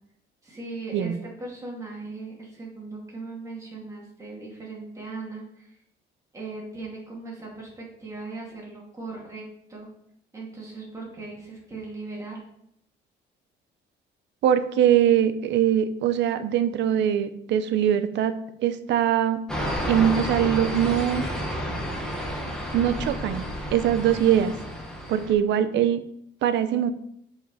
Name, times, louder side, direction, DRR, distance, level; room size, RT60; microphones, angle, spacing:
voice 1, 0.4-5.7 6.3-9.9 10.3-12.4, right 3 dB, 15° right, -3 dB, 2.4 m, -38 dB
voice 2, 14.4-19.4 19.9-21.2 22.7-23.4 23.7-24.5 25.1-26.0 26.4-26.9, right 10 dB, 70° right, 11 dB, 0.7 m, -22 dB
sound 1, 19.5-25.3, equal, 5° left, 1.3 m, -31 dB
7.8 x 4.9 x 4.9 m, 0.73 s
cardioid pair, 165°, 19 cm